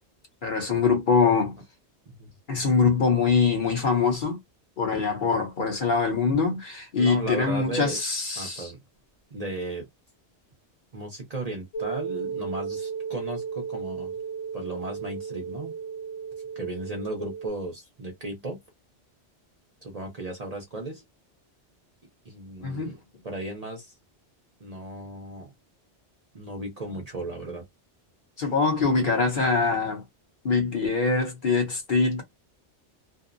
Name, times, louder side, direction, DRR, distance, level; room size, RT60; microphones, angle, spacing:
voice 1, 0.4-1.6 2.5-4.4 4.8-8.7 22.6-22.9 28.4-30.0 30.4-32.2, left 4 dB, 50° left, 0.9 m, -23 dB
voice 2, 7.0-8.0 8.4-8.8 9.3-9.9 10.9-14.2 14.5-15.8 16.6-18.6 19.8-21.0 22.2-23.0 23.2-23.9 24.6-25.5 26.3-27.6, right 2 dB, 45° right, 0.6 m, -35 dB
sound 1, 11.7-17.5, right 6 dB, 85° left, 1.1 m, -34 dB
2.6 x 2.0 x 2.5 m
omnidirectional pair, 1.2 m